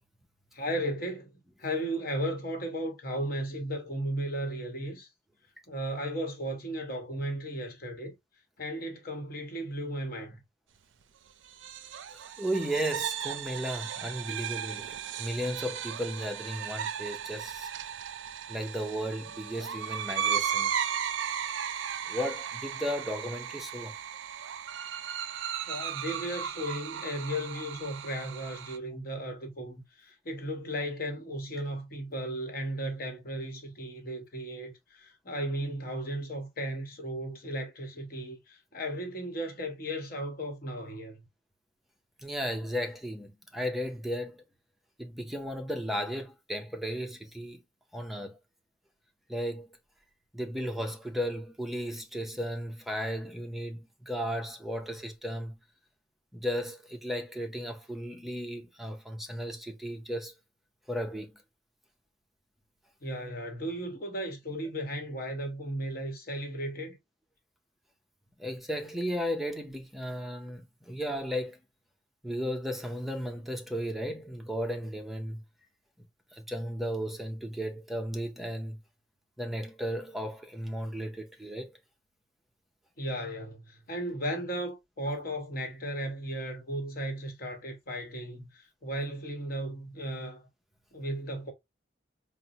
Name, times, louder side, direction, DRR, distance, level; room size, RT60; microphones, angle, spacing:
voice 1, 0.5-5.1 5.7-8.1 8.6-10.4 25.7-41.3 63.0-67.0 83.0-90.5 90.9-91.5, equal, 50° left, 1.0 m, -35 dB
sound 1, 11.5-28.8, right 8 dB, 80° right, 0.4 m, -36 dB
voice 2, 12.1-17.7 18.5-20.7 22.1-23.9 42.2-44.4 45.0-47.6 47.9-48.4 49.3-49.8 50.3-55.6 56.3-60.3 60.9-61.4 68.4-71.6 72.2-75.4 76.3-78.8 79.4-81.7, equal, ahead, 0.5 m, -35 dB
4.0 x 2.0 x 2.6 m
head